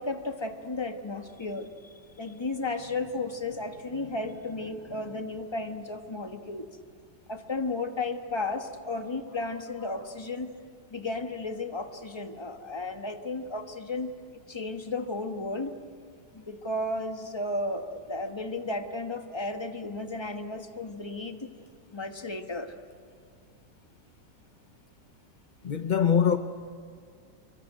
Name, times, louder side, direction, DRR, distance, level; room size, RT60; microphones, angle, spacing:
voice 1, 0.0-6.7 7.3-10.5 10.9-14.1 14.5-15.7 16.3-21.5 21.9-22.7, left 2 dB, 15° left, 1.2 m, -34 dB
voice 2, 25.6-26.4, left 8 dB, 70° left, 0.4 m, -24 dB
25.5 x 23.0 x 9.1 m
omnidirectional pair, 2.0 m